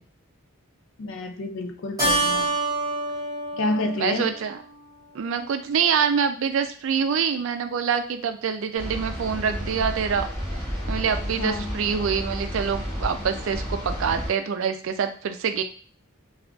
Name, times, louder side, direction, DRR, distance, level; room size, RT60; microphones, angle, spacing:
voice 1, 1.0-2.5 3.6-4.3 11.4-11.8, left 2 dB, 65° left, 5 dB, 0.4 m, -29 dB
Keyboard (musical), 2.0-4.9, right 2 dB, 20° right, 1.3 m, -27 dB
voice 2, 4.0-4.6 5.1-10.3 10.9-15.6, right 6 dB, 65° right, 8 dB, 0.3 m, -25 dB
sound 1, 8.8-14.3, equal, 15° left, 1.3 m, -31 dB
3.7 x 2.4 x 2.3 m, 0.43 s
head